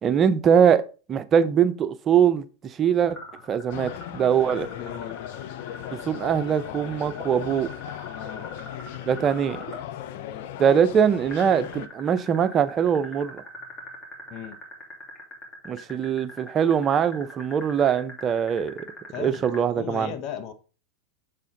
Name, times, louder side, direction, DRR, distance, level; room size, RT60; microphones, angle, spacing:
voice 1, 0.0-2.4 2.8-3.2 3.5-4.7 6.1-7.7 9.1-9.6 10.6-13.4 15.6-18.8 19.2-20.1, right 8 dB, 30° right, 0.6 m, -22 dB
sound 1, 3.1-9.8 11.3-19.6, left 2 dB, 20° left, 2.7 m, -42 dB
sound 2, 3.7-11.9, left 11 dB, 65° left, 0.6 m, -38 dB
voice 2, 4.8-5.2 8.2-8.5 10.1-10.5 14.3-14.6 19.1-20.5, left 9 dB, 45° left, 1.0 m, -37 dB
7.1 x 4.2 x 3.8 m
hypercardioid pair, 105°, 0 cm